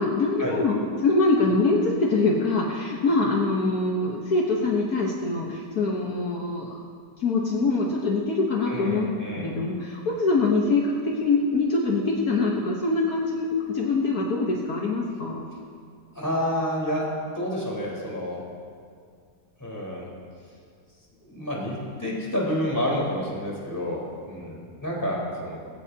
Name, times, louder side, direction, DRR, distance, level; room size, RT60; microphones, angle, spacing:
voice 1, 0.0-6.8 7.2-15.4, left 3 dB, 65° left, -2 dB, 1.7 m, -24 dB
voice 2, 8.6-9.5 16.1-18.4 19.6-20.1 21.2-25.6, equal, 10° left, -5 dB, 4.3 m, -29 dB
20.5 x 16.5 x 2.9 m, 2.2 s
omnidirectional pair, 1.8 m